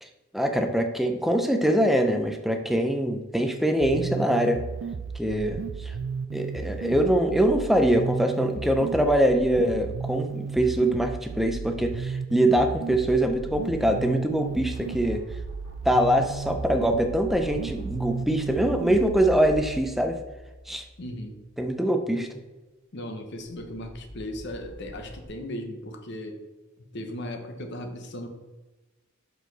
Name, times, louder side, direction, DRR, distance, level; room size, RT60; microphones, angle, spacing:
voice 1, 0.3-4.6 5.1-5.9 6.3-15.2 15.9-20.2 20.7-20.8 21.6-22.3, right 1 dB, ahead, 5 dB, 0.5 m, -23 dB
sound 1, 3.8-19.8, right 5 dB, 60° right, 0.3 m, -34 dB
sound 2, 14.2-21.4 23.4-25.3, equal, 90° left, 1.7 m, -45 dB
voice 2, 21.0-21.4 22.9-26.4 26.9-28.3, left 1 dB, 55° left, 5 dB, 0.9 m, -37 dB
6.7 x 4.6 x 4.0 m, 1.1 s
head